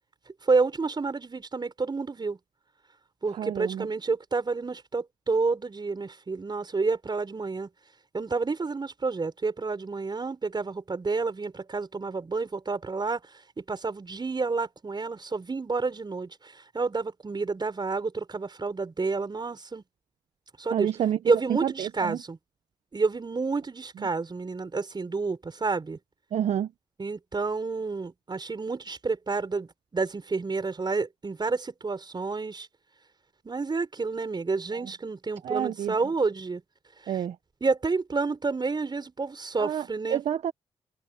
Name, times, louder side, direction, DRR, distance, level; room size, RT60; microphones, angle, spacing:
voice 1, 0.4-2.4 3.2-7.7 8.1-19.8 20.6-20.9 21.2-22.4 22.9-26.0 27.0-32.7 33.4-36.6 37.0-37.2 37.6-40.2, right 4 dB, 40° right, 6.7 m, -29 dB
voice 2, 3.4-3.9 20.7-21.2 21.5-22.2 26.3-26.7 35.4-35.9 37.1-37.3 39.6-39.8 40.1-40.5, right 10 dB, 70° right, 1.3 m, -28 dB
supercardioid pair, 45°, 11 cm